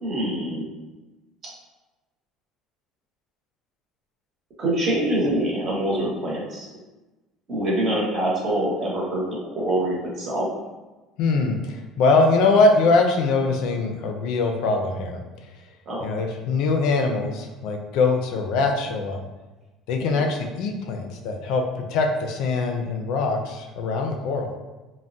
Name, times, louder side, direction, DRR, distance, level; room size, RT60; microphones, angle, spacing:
voice 1, 0.0-0.7 4.6-6.7 7.5-9.2 9.5-10.5 15.9-16.1 20.0-20.2, right 1 dB, 35° right, -5 dB, 0.9 m, -25 dB
voice 2, 11.2-15.2 16.0-19.2 19.9-21.6 21.9-24.5, left 3 dB, 65° left, 3 dB, 0.3 m, -22 dB
3.4 x 2.0 x 2.6 m, 1.1 s
cardioid pair, 155°, 0 cm